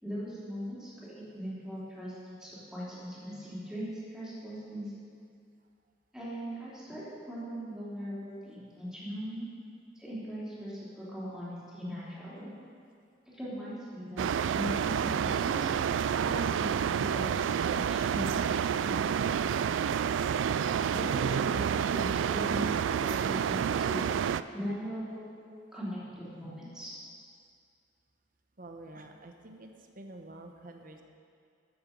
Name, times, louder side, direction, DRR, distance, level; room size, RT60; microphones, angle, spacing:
voice 1, 0.0-5.0 6.1-9.5 9.9-12.5 13.3-15.7 16.2-18.9 20.9-24.1 24.5-25.4 25.7-26.9, equal, 5° right, -10 dB, 3.4 m, -40 dB
sound 1, 14.2-24.4, right 7 dB, 90° right, 0.3 m, -29 dB
voice 2, 28.6-31.0, right 2 dB, 50° right, 4 dB, 1.0 m, -48 dB
13.5 x 8.0 x 5.3 m, 2.3 s
head